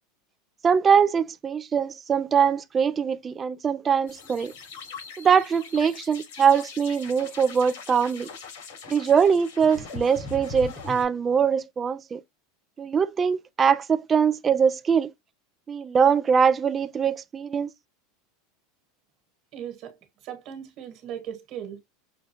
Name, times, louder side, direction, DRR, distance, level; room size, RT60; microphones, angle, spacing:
voice 1, 0.6-4.5 5.2-8.3 8.9-12.2 12.8-15.1 15.7-17.7, right 6 dB, 25° right, 0.3 m, -22 dB
sound 1, 4.1-11.0, left 4 dB, 75° left, 3.3 m, -41 dB
voice 2, 19.5-20.0 20.2-21.8, right 9 dB, 50° right, 1.5 m, -37 dB
6.3 x 2.3 x 2.9 m
supercardioid pair, 125°, 0 cm